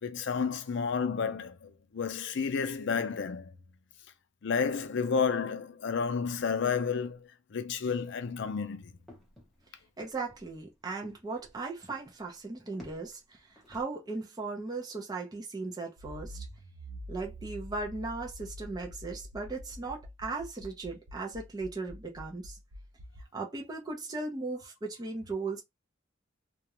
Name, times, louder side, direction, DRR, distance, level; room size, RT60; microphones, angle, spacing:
voice 1, 0.0-3.5 4.4-8.9, left 5 dB, 65° left, 0.5 m, -31 dB
sound 1, 8.2-13.8, left 1 dB, ahead, 0.8 m, -55 dB
voice 2, 10.0-13.4 13.7-16.5 17.1-22.6 23.3-25.6, right 3 dB, 20° right, 0.5 m, -37 dB
Accelerating revving vroom, 16.0-23.2, left 1 dB, 85° right, 0.6 m, -46 dB
2.4 x 2.1 x 2.9 m
head